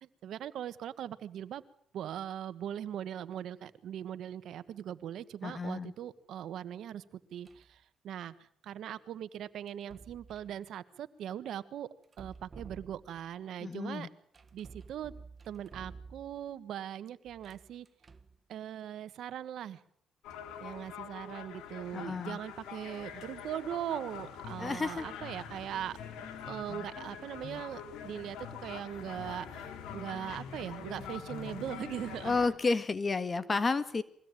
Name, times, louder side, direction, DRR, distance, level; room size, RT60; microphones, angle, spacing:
voice 1, 0.0-1.6 1.9-7.0 7.3-11.9 12.2-14.1 14.5-15.1 15.4-17.9 18.5-19.8 20.6-26.0 26.4-32.4, right 10 dB, 75° right, 13 dB, 1.4 m, -40 dB
voice 2, 5.4-5.9 13.6-14.1 21.9-22.4 24.6-25.1 32.2-34.0, left 4 dB, 30° left, 13 dB, 1.5 m, -31 dB
sound 1, 7.4-7.8 9.7-10.6 12.0-13.3 14.3-16.5 17.3-18.4, right 4 dB, 35° right, 1.4 m, -52 dB
sound 2, 20.2-32.5, left 7 dB, 90° left, 2.8 m, -45 dB
Guitar, 24.2-32.2, left 7 dB, 65° left, 1.5 m, -49 dB
23.0 x 16.5 x 9.1 m, 0.66 s
cardioid pair, 90°, 0 cm